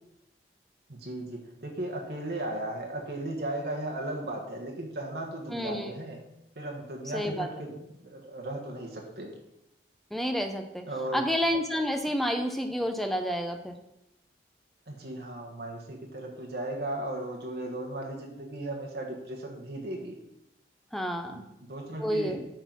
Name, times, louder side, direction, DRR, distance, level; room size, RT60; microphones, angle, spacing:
voice 1, 0.9-6.2 6.5-9.3 10.9-11.3 14.9-20.2 21.3-21.4 21.7-22.4, right 1 dB, 65° right, 0 dB, 1.4 m, -36 dB
voice 2, 5.5-5.9 7.1-7.5 10.1-10.8 11.1-13.7 20.9-21.4 22.0-22.4, equal, ahead, 5 dB, 0.6 m, -29 dB
9.2 x 4.0 x 6.1 m, 0.87 s
head